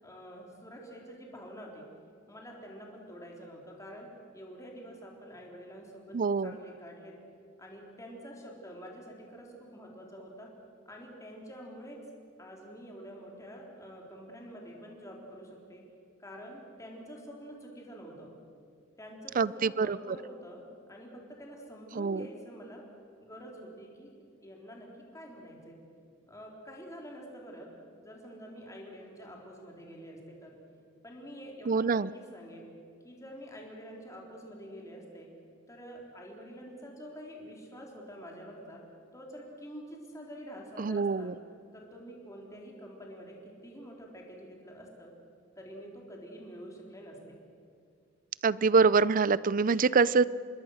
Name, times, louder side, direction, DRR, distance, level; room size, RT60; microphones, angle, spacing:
voice 1, 0.0-1.9 2.3-4.1 4.3-6.2 6.4-7.2 7.6-10.5 10.9-12.0 12.4-15.8 16.2-18.3 19.0-22.8 23.2-25.8 26.3-27.7 28.0-30.6 31.0-32.7 33.0-35.3 35.7-38.8 39.1-41.3 41.7-45.1 45.6-47.4, equal, 15° left, -1 dB, 3.6 m, -47 dB
voice 2, 6.1-6.6 19.4-20.0 22.0-22.3 31.7-32.1 40.8-41.3 48.4-50.2, right 4 dB, 45° right, 19 dB, 0.5 m, -25 dB
27.0 x 21.0 x 6.5 m, 2.3 s
head